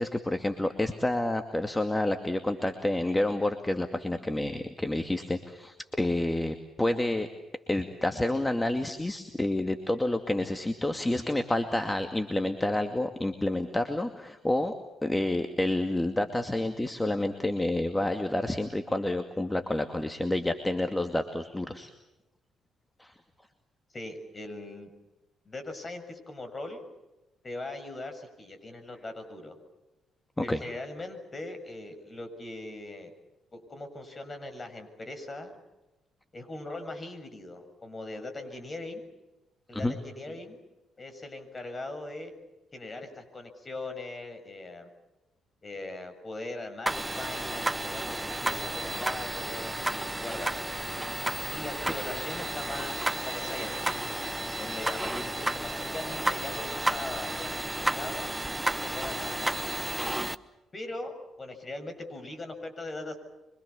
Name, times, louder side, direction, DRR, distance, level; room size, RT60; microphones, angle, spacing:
voice 1, 0.0-7.3 7.7-21.9 23.0-23.1 30.4-30.6 39.7-39.9 51.8-51.9, left 1 dB, 15° left, 6 dB, 2.4 m, -29 dB
voice 2, 23.9-24.9 25.5-26.8 27.4-29.6 30.4-33.1 33.5-35.6 36.3-39.0 39.7-40.6 41.0-42.3 42.7-44.9 45.6-50.7 51.5-54.0 54.6-58.3 58.8-59.8 60.7-63.2, left 2 dB, 35° left, 7 dB, 7.3 m, -40 dB
sound 1, 46.9-60.4, right 1 dB, 15° right, 1.2 m, -32 dB
25.5 x 24.5 x 7.2 m, 1.0 s
hypercardioid pair, 45°, 0 cm